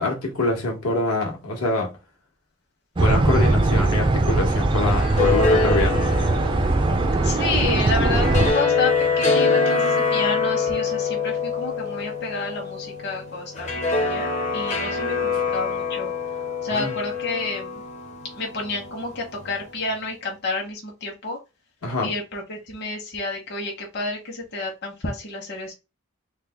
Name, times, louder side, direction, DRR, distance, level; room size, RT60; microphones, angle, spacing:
voice 1, 0.0-1.9 3.0-6.0 16.7-16.9 21.8-22.1, left 2 dB, 80° left, 1.1 m, -25 dB
sound 1, 3.0-8.5, right 2 dB, 20° right, 0.3 m, -20 dB
sound 2, 4.7-19.9, left 4 dB, 30° left, 0.6 m, -25 dB
voice 2, 7.2-15.2 15.5-16.1 16.6-17.8 18.3-21.4 22.0-25.7, left 3 dB, 50° left, 1.0 m, -30 dB
3.3 x 2.1 x 3.4 m
head